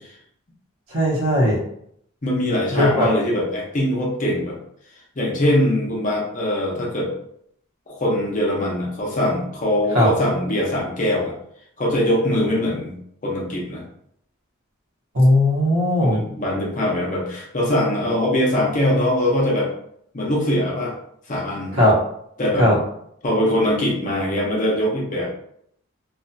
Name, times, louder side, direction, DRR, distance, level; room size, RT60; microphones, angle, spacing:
voice 1, 0.9-1.6 2.8-3.1 9.9-10.1 15.1-16.2 21.7-21.9 22.6-22.7, left 1 dB, 70° right, -4 dB, 0.9 m, -17 dB
voice 2, 2.2-4.6 5.2-7.1 7.9-11.3 11.8-13.0 13.2-13.8 16.0-19.7 20.1-20.9 21.3-21.8 22.4-22.7 23.2-25.3, left 1 dB, 35° left, -3 dB, 0.6 m, -22 dB
2.6 x 2.4 x 2.2 m, 0.70 s
head